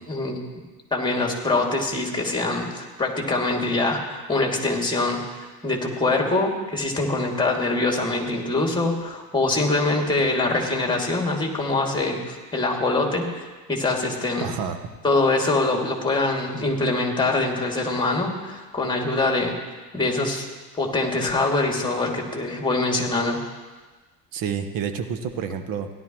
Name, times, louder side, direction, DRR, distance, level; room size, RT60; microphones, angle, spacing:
voice 1, 0.1-0.4 0.9-5.2 5.6-14.5 15.0-19.5 19.9-20.5 20.8-23.4, left 2 dB, 10° left, 1 dB, 2.6 m, -24 dB
voice 2, 14.4-14.8 24.3-25.9, right 7 dB, 45° right, 8 dB, 1.3 m, -29 dB
17.0 x 11.5 x 3.2 m, 1.3 s
hypercardioid pair, 75°, 47 cm